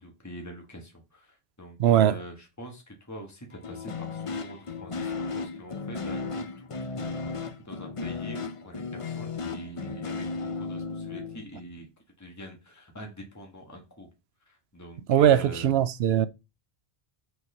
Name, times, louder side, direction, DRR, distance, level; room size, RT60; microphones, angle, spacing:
voice 1, 0.0-11.9 12.2-14.1 14.5-15.8, equal, 15° left, 1.7 m, -44 dB
voice 2, 1.8-2.2 15.1-16.3, right 10 dB, 85° right, 0.9 m, -20 dB
sound 1, 3.5-11.4, left 4 dB, 35° left, 0.7 m, -35 dB
6.6 x 4.6 x 5.6 m
omnidirectional pair, 1.0 m